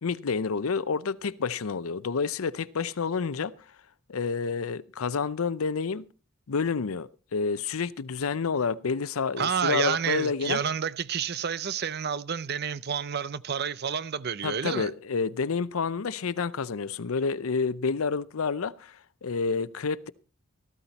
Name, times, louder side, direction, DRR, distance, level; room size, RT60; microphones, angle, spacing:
voice 1, 0.0-3.5 4.1-6.1 6.5-10.6 14.4-20.1, left 5 dB, 90° left, 0.6 m, -29 dB
voice 2, 9.4-14.9, right 7 dB, 50° right, 0.6 m, -29 dB
14.5 x 13.0 x 4.1 m
head